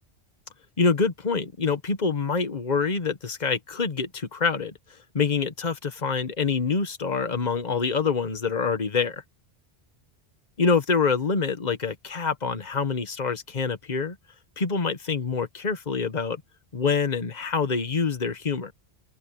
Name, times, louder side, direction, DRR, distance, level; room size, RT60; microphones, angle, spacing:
voice 1, 0.8-4.7 5.1-9.2 10.6-14.2 14.6-16.4 16.7-18.7, left 5 dB, 45° left, 1.4 m, -26 dB
omnidirectional pair, 1.1 m